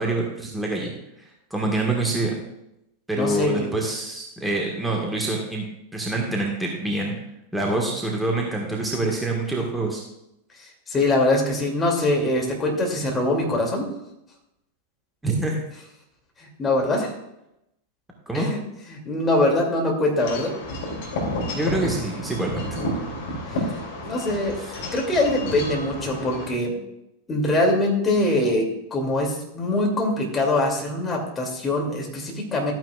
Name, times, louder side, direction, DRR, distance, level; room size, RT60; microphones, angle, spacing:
voice 1, 0.0-2.4 3.1-5.6 5.9-7.1 7.5-10.0 15.2-15.6 18.3-18.5 21.5-22.8 24.6-24.8, right 2 dB, 5° right, -1 dB, 1.6 m, -26 dB
voice 2, 3.1-3.7 10.9-13.9 16.4-17.1 18.3-18.6 18.9-20.5 24.1-24.6 24.9-26.7 27.3-32.7, left 1 dB, 20° left, 0 dB, 2.6 m, -23 dB
Wind chime / Wind, 20.2-26.5, left 1 dB, 55° left, 2.8 m, -31 dB
13.0 x 9.2 x 2.4 m, 0.85 s
figure-of-eight pair, 90°, 0 cm